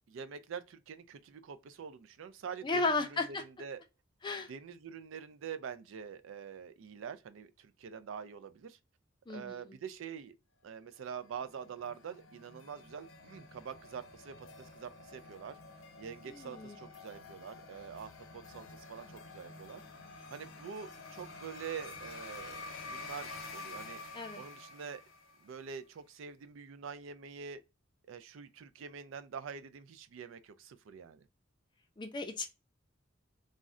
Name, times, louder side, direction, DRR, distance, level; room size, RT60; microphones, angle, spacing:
voice 1, 0.1-2.9 3.3-3.8 4.5-8.8 9.3-10.3 10.6-15.6 16.0-19.8 20.3-24.0 24.4-25.0 25.4-27.6 28.1-31.3, right 7 dB, 70° right, 0.4 m, -45 dB
voice 2, 2.6-3.4 4.2-4.5 9.3-9.8 16.3-16.8 24.1-24.4 32.0-32.5, left 3 dB, 25° left, 0.4 m, -34 dB
sound 1, 10.9-25.6, left 3 dB, 90° left, 0.7 m, -49 dB
2.5 x 2.1 x 3.6 m
head